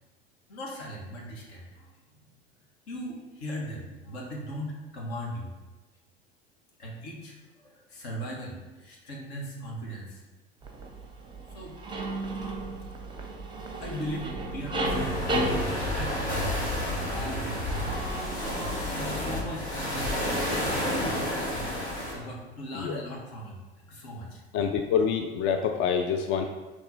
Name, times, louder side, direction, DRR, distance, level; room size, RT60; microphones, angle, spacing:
voice 1, 0.5-2.2 2.9-5.5 6.8-10.2 11.5-11.8 13.7-16.5 16.9-17.8 18.6-20.4 20.7-21.7 22.1-24.4, equal, 65° left, -1 dB, 1.3 m, -39 dB
sound 1, 10.6-19.2, right 2 dB, 15° right, 0.7 m, -34 dB
sound 2, 14.8-22.1, left 1 dB, 90° left, 1.1 m, -30 dB
voice 2, 22.7-23.0 24.5-26.5, left 7 dB, 40° left, 5 dB, 0.4 m, -26 dB
4.2 x 3.1 x 3.9 m, 1.2 s
hypercardioid pair, 80°, 32 cm